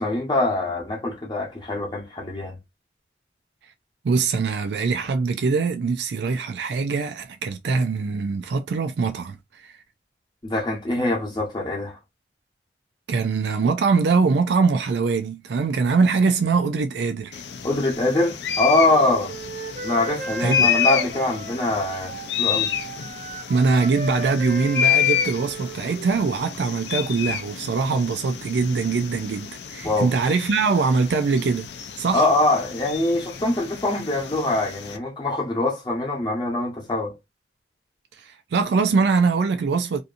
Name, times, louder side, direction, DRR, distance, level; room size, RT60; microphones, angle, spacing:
voice 1, 0.0-2.5 10.4-12.0 17.6-19.3 19.8-22.1 22.4-22.7 29.8-30.1 32.1-37.1, left 2 dB, 25° left, 0.8 m, -23 dB
voice 2, 4.0-9.8 13.1-17.4 20.4-20.7 23.5-31.7 32.0-32.3 38.2-40.0, right 4 dB, 70° right, 0.4 m, -22 dB
sound 1, 17.3-35.0, left 9 dB, 70° left, 0.4 m, -29 dB
Wind instrument woodwind instrument, 18.8-22.3 22.5-26.1, right 1 dB, 45° right, 0.7 m, -35 dB
2.7 x 2.6 x 2.4 m
head